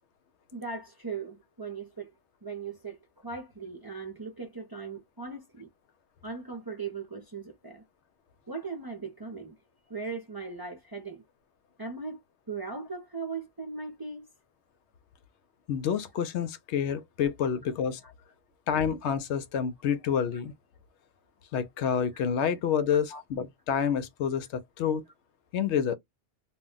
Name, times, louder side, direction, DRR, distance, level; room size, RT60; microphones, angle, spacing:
voice 1, 0.5-2.1 2.4-5.7 6.2-7.8 8.5-9.6 9.9-11.2 11.8-12.2 12.5-14.3 18.0-18.1 20.3-20.4 23.1-23.2, right 4 dB, 30° right, 0.5 m, -38 dB
voice 2, 15.7-18.0 18.7-20.5 21.5-25.0 25.5-25.9, left 8 dB, 80° left, 0.9 m, -28 dB
2.2 x 2.1 x 3.7 m
omnidirectional pair, 1.1 m